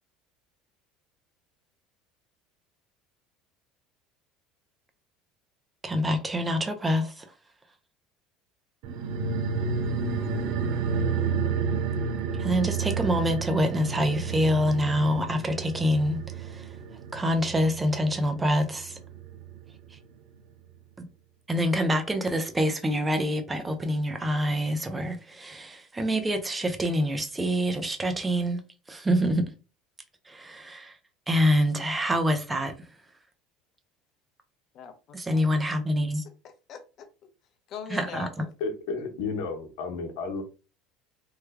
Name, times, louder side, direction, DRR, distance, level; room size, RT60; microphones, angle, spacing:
voice 1, 5.8-7.3 12.4-16.7 17.1-19.0 19.9-20.0 21.5-28.6 28.9-29.4 30.3-31.0 31.3-32.7 35.1-36.2 37.9-38.3, equal, 10° right, 0.5 m, -26 dB
sound 1, 8.8-19.7 20.0-20.1, right 5 dB, 65° right, 0.6 m, -31 dB
voice 2, 34.7-35.9 36.4-37.1 37.7-38.5, left 7 dB, 40° left, 0.7 m, -42 dB
voice 3, 38.6-40.4, left 4 dB, 85° left, 0.9 m, -32 dB
3.2 x 2.3 x 3.4 m
cardioid pair, 155°, 0 cm